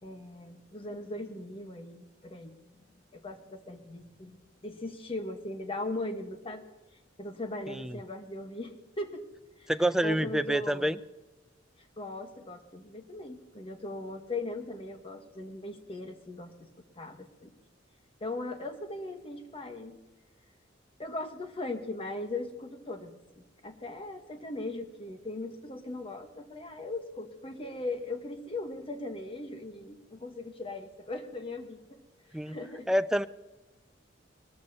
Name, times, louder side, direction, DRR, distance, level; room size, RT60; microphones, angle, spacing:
voice 1, 0.0-2.8 3.1-6.6 7.2-9.2 9.6-9.7 10.0-10.9 12.0-16.7 17.0-17.5 18.2-20.0 21.0-32.0 32.5-32.9, left 2 dB, 30° left, 6 dB, 1.2 m, -39 dB
voice 2, 7.7-8.0 9.7-11.0 32.3-32.6 32.9-33.3, right 1 dB, 5° right, 12 dB, 0.3 m, -27 dB
21.5 x 13.5 x 2.8 m, 1.1 s
head